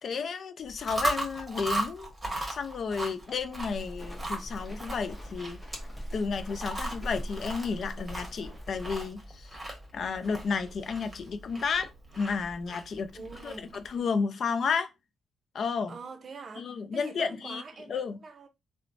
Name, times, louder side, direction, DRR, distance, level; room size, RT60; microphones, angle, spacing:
voice 1, 0.0-5.6 6.1-9.5 9.9-14.9 15.5-16.0 16.6-17.6 17.9-18.2, left 5 dB, 55° left, 0.4 m, -32 dB
Chewing mastication, 0.7-13.9, right 1 dB, 20° right, 1.0 m, -37 dB
Walk footsteps, 3.6-9.1, equal, 10° left, 0.8 m, -41 dB
voice 2, 13.1-13.8 15.9-18.5, right 4 dB, 45° right, 0.6 m, -44 dB
3.0 x 2.0 x 2.5 m
cardioid pair, 90°, 0 cm